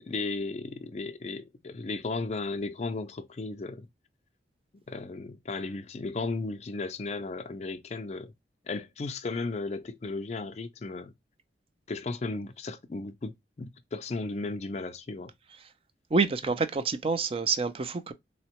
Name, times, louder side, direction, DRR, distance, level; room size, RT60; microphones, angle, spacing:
voice 1, 0.0-3.9 4.9-8.3 8.6-11.1 11.9-15.3, left 3 dB, 35° left, 0.4 m, -35 dB
voice 2, 16.1-18.1, right 4 dB, 30° right, 0.4 m, -27 dB
3.8 x 2.1 x 2.8 m
head